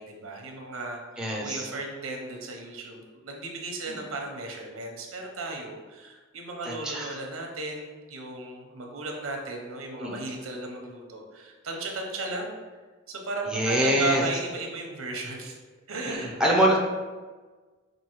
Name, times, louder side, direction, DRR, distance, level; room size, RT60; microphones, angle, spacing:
voice 1, 0.0-12.6 13.1-15.6 15.9-16.8, right 2 dB, 90° right, 1 dB, 0.8 m, -35 dB
voice 2, 1.2-1.7 3.9-4.0 6.6-7.2 10.0-10.2 13.5-14.2 16.1-16.8, equal, 5° right, -2 dB, 0.5 m, -25 dB
5.3 x 2.6 x 3.0 m, 1.3 s
head